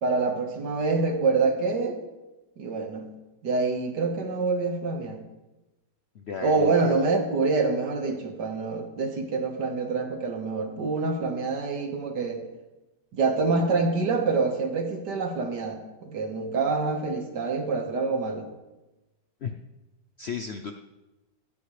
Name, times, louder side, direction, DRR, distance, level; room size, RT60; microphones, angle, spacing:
voice 1, 0.0-2.0 2.6-3.1 3.4-5.2 6.4-12.4 13.1-18.5, right 4 dB, 75° right, 4 dB, 2.1 m, -26 dB
voice 2, 6.1-7.0 19.4-19.6 20.2-20.7, left 6 dB, 65° left, 6 dB, 0.6 m, -34 dB
16.5 x 14.5 x 3.3 m, 1.0 s
omnidirectional pair, 1.9 m